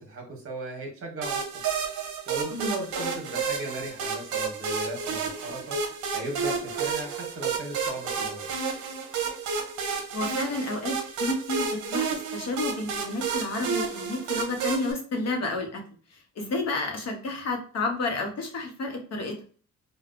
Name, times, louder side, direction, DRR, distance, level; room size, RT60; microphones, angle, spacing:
voice 1, 0.0-1.4 2.3-5.8 6.1-8.5, right 2 dB, 45° right, 1 dB, 1.2 m, -36 dB
sound 1, 1.2-14.9, right 5 dB, 75° right, 0.7 m, -31 dB
voice 2, 10.1-15.8 16.4-19.4, left 2 dB, 55° left, 2 dB, 0.9 m, -30 dB
3.4 x 2.3 x 2.5 m, 0.41 s
cardioid pair, 90°, 30 cm